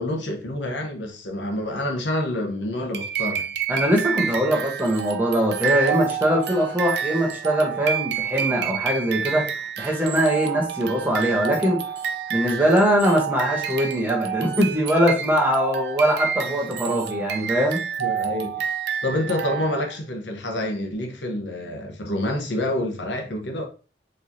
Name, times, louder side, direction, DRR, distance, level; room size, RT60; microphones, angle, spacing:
voice 1, 0.0-3.5 18.0-18.7 19.0-23.6, left 1 dB, 85° left, 1.0 m, -27 dB
sound 1, 2.9-20.0, right 8 dB, 65° right, 0.4 m, -29 dB
voice 2, 3.7-11.8 12.3-17.8, equal, 10° right, 1.1 m, -22 dB
4.5 x 3.2 x 2.7 m
head